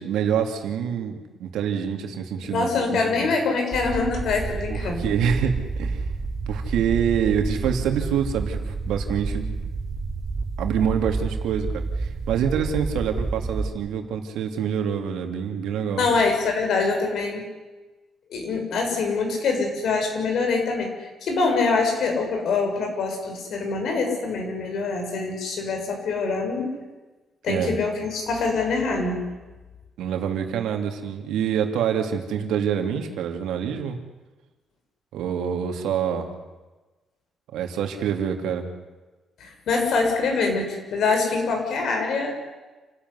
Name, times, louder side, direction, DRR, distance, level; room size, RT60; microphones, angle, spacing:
voice 1, 0.0-3.3 4.7-6.0 6.5-9.7 10.6-16.1 27.5-27.8 30.0-34.0 35.1-36.3 37.5-38.7, right 8 dB, 85° right, 4 dB, 3.0 m, -26 dB
voice 2, 2.5-5.0 15.9-17.4 18.3-26.7 27.4-29.2 39.4-42.4, left 4 dB, 70° left, 3 dB, 6.7 m, -24 dB
sound 1, 3.7-13.7, right 3 dB, 45° right, 3.7 m, -29 dB
29.0 x 13.5 x 9.9 m, 1.2 s
cardioid pair, 90°, 0 cm